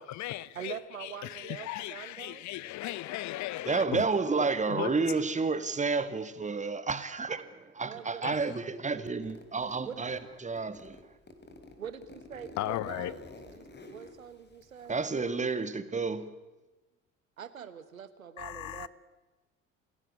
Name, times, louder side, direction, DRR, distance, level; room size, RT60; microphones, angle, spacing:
voice 1, 0.0-4.0 4.4-4.9 8.2-8.3 12.6-13.2 18.4-18.9, left 15 dB, 45° left, 0.9 m, -37 dB
voice 2, 0.5-2.4 7.9-8.2 9.8-10.1 11.8-13.1 13.4-15.0 17.4-18.9, right 8 dB, 80° right, 1.3 m, -44 dB
voice 3, 3.7-7.5 7.8-11.0 14.9-16.3, right 4 dB, 15° right, 1.8 m, -30 dB
Zipper (clothing), 9.2-10.3 10.6-15.3, left 2 dB, 25° left, 3.6 m, -50 dB
28.0 x 17.0 x 8.4 m
figure-of-eight pair, 60°, 41 cm